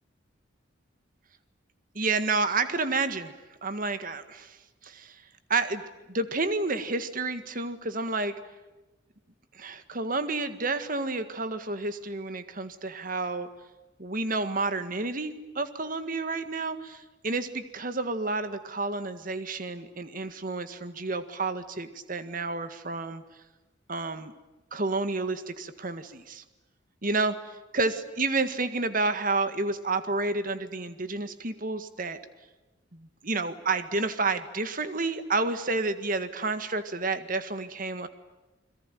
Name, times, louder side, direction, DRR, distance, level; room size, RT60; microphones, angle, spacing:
voice 1, 2.0-3.4 3.6-4.6 4.8-5.2 5.5-5.8 6.1-8.3 9.5-13.5 14.0-23.2 23.9-24.3 24.7-26.4 27.0-32.2 32.9-38.1, right 3 dB, 45° right, 11 dB, 1.8 m, -30 dB
29.5 x 22.0 x 9.2 m, 1.1 s
head